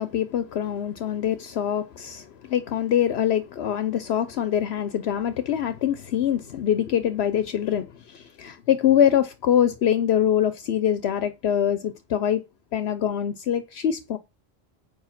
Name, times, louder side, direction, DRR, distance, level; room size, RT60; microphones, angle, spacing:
voice 1, 0.0-12.4 12.7-14.2, left 9 dB, 70° left, 0.9 m, -24 dB
8.0 x 4.7 x 5.8 m
omnidirectional pair, 1.1 m